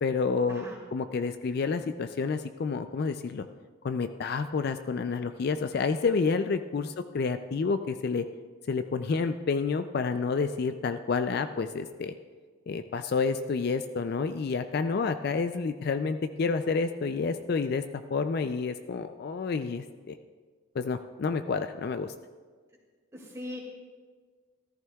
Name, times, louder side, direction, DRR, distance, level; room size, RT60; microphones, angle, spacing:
voice 1, 0.0-0.6 0.9-3.5 3.8-8.2 8.7-12.1 12.7-17.8 18.1-20.2 20.8-22.1, left 4 dB, 50° left, 9 dB, 0.3 m, -29 dB
voice 2, 23.1-23.6, left 1 dB, 15° right, -2 dB, 2.1 m, -40 dB
14.0 x 13.5 x 2.3 m, 1.5 s
head